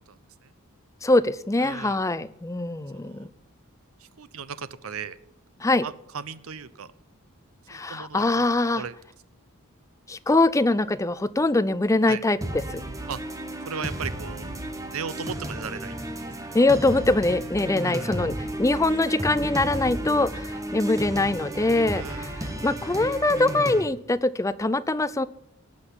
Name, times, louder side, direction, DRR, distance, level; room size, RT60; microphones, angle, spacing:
voice 1, 0.1-0.5 1.6-2.0 2.9-3.3 4.0-5.2 5.8-6.9 7.7-8.5 8.7-8.9 12.0-12.2 13.1-13.2 13.6-14.5 14.9-16.0 17.8-18.2 21.9-22.3, right 6 dB, 80° right, 15 dB, 0.8 m, -37 dB
voice 2, 1.0-3.3 5.6-5.9 7.7-8.8 10.1-12.8 16.5-25.3, left 2 dB, 15° left, 14 dB, 0.5 m, -23 dB
sound 1, 12.4-23.8, right 1 dB, 15° right, 1.4 m, -33 dB
18.0 x 6.3 x 9.8 m, 0.76 s
head